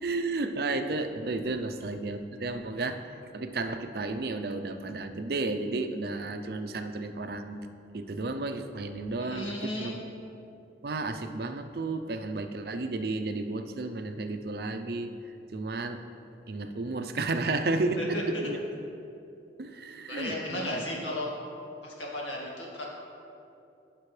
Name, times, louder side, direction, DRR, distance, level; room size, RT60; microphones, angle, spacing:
voice 1, 0.0-3.0 3.3-7.6 7.9-10.0 10.8-15.1 15.5-16.0 16.5-18.6 19.6-20.8, right 3 dB, 55° right, 8 dB, 0.5 m, -32 dB
voice 2, 9.2-10.0 18.0-18.5 20.1-21.3 21.8-22.8, left 1 dB, 85° left, -3 dB, 1.9 m, -35 dB
14.5 x 6.0 x 3.3 m, 2.7 s
head